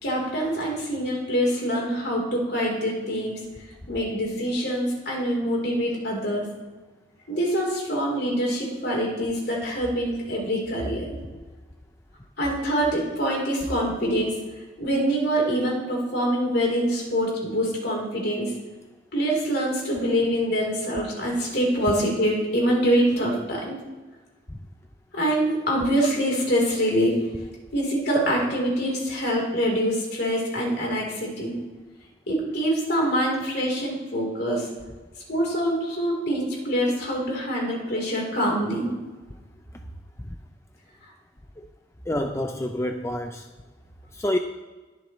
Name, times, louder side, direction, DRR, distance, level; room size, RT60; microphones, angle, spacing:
voice 1, 0.0-3.4 3.9-6.5 7.3-11.2 12.4-14.3 14.8-18.5 19.1-23.8 25.1-27.3 27.7-31.6 32.3-34.7 35.3-38.9, equal, 60° left, -2 dB, 3.8 m, -25 dB
voice 2, 42.1-43.4 44.1-44.4, left 1 dB, 15° left, 5 dB, 0.5 m, -27 dB
21.0 x 7.2 x 3.2 m, 1.3 s
head